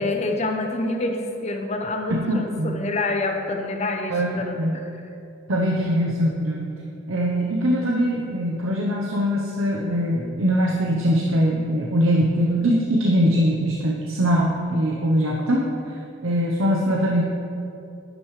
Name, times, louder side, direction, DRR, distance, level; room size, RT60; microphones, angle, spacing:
voice 1, 0.0-4.8, left 2 dB, 35° left, 4 dB, 0.7 m, -27 dB
voice 2, 2.1-2.8 4.1-4.8 5.5-6.7 7.1-15.6 16.2-17.2, equal, 85° right, -2 dB, 0.9 m, -22 dB
10.5 x 10.5 x 3.2 m, 2.7 s
head